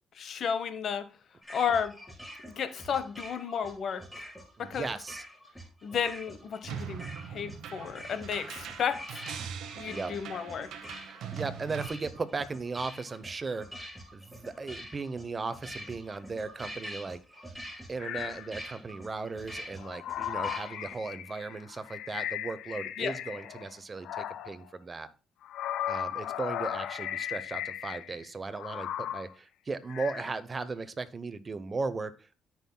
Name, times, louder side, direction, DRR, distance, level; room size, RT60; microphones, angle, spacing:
voice 1, 0.1-1.1 1.5-1.9 2.5-4.0 4.6-4.9 5.8-7.0 7.3-9.2 9.8-10.7 23.0-23.1, left 7 dB, 60° left, 11 dB, 0.9 m, -32 dB
sound 1, 1.4-21.0, equal, ahead, 2.4 m, -46 dB
voice 2, 4.6-5.2 9.8-10.1 11.1-17.5 17.9-25.1 25.9-32.4, right 4 dB, 30° right, 14 dB, 0.7 m, -37 dB
sound 2, 6.7-11.9, right 8 dB, 80° right, 0.9 m, -41 dB
sound 3, 18.0-18.5 19.6-23.7 24.0-24.6 25.4-28.3 28.5-29.3 29.9-30.4, left 11 dB, 80° left, 0.4 m, -36 dB
13.5 x 5.5 x 2.2 m, 0.34 s
cardioid pair, 90°, 0 cm